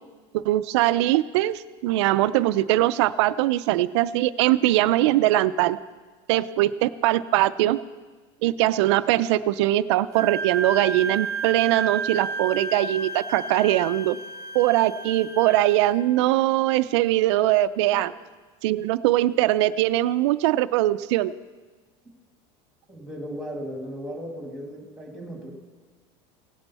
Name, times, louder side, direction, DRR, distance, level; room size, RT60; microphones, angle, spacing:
voice 1, 0.3-5.8 6.3-7.8 8.4-14.2 14.5-18.1 18.6-21.3, right 15 dB, 90° right, 13 dB, 0.4 m, -21 dB
Wind instrument woodwind instrument, 10.1-16.0, right 4 dB, 25° right, 0.6 m, -32 dB
voice 2, 22.9-25.5, equal, ahead, 1 dB, 1.8 m, -36 dB
17.0 x 8.9 x 4.1 m, 1.4 s
cardioid pair, 175°, 14 cm